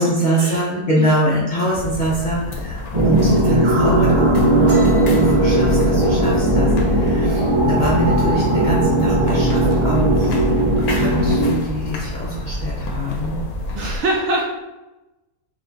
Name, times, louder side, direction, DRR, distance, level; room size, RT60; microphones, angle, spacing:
voice 1, 0.0-10.5 10.8-13.4, right 1 dB, 45° left, -6 dB, 0.6 m, -23 dB
sound 1, 1.7-14.0, left 2 dB, 80° left, 1.2 m, -29 dB
sound 2, 2.9-11.5, right 1 dB, 45° right, 0.3 m, -17 dB
voice 2, 3.1-3.6 13.7-14.5, right 2 dB, 60° right, 0 dB, 0.8 m, -23 dB
sound 3, 4.7-8.1 8.4-8.8 9.1-9.7 9.9-10.7, right 2 dB, 85° right, 1.7 m, -37 dB
4.9 x 2.4 x 3.8 m, 1.0 s
omnidirectional pair, 1.5 m